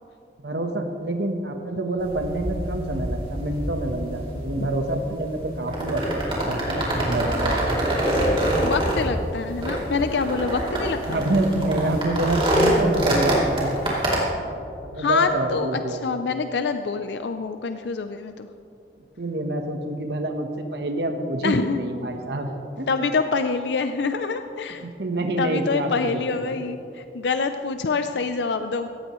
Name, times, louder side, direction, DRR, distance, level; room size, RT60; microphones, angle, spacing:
voice 1, 0.4-7.7 11.1-13.7 14.9-16.0 19.2-22.5 22.8-22.9 24.8-26.2, right 1 dB, 75° right, 4 dB, 1.1 m, -27 dB
sound 1, 2.0-14.2, right 1 dB, 30° right, 2.9 m, -25 dB
voice 2, 8.6-11.2 15.0-18.5 21.4-21.8 22.9-24.9 25.4-28.9, left 4 dB, 85° left, 8 dB, 0.5 m, -26 dB
17.5 x 15.0 x 3.1 m, 2.7 s
head